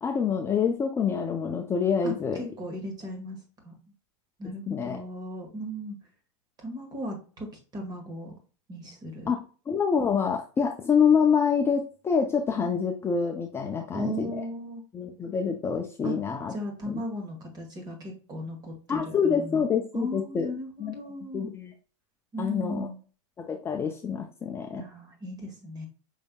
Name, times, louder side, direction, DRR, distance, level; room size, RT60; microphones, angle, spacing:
voice 1, 0.0-2.4 4.7-5.0 9.3-14.4 14.9-16.5 16.9-17.0 18.9-20.5 20.8-20.9 21.3-21.7 22.4-22.9 23.4-24.8, left 6 dB, 15° left, 2 dB, 0.4 m, -26 dB
voice 2, 2.0-3.4 3.6-3.8 4.4-6.0 6.6-8.3 8.7-9.3 12.6-12.8 13.8-14.8 16.0-16.2 16.5-19.6 19.9-21.5 22.3-23.0 24.7-25.9, equal, 25° right, 4 dB, 1.5 m, -36 dB
5.3 x 3.4 x 2.2 m, 0.37 s
hypercardioid pair, 130°, 16 cm